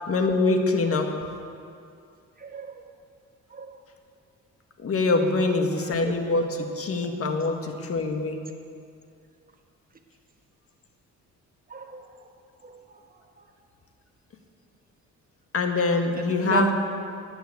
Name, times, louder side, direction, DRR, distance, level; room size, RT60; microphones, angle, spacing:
voice 1, 0.1-1.1 4.8-8.4 15.5-16.7, left 3 dB, 50° left, 4 dB, 1.7 m, -24 dB
voice 2, 2.4-2.9 3.5-3.8 5.4-6.1 7.0-7.1 11.7-12.3 12.6-13.0 13.4-13.5 16.2-16.7, right 5 dB, 30° right, 4 dB, 1.4 m, -33 dB
11.5 x 9.1 x 8.7 m, 2.4 s
cardioid pair, 90°, 30 cm